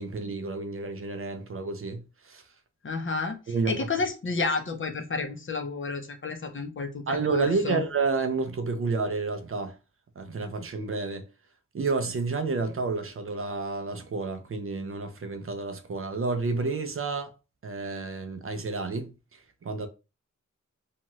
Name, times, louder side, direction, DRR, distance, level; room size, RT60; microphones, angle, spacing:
voice 1, 0.0-2.4 3.5-3.9 7.1-9.8 10.2-11.3 11.7-17.3 17.6-19.9, right 4 dB, 45° right, 0.4 m, -30 dB
voice 2, 2.8-3.4 3.7-7.8, left 4 dB, 40° left, 0.6 m, -31 dB
2.7 x 2.3 x 3.0 m
wide cardioid pair, 130°, 31 cm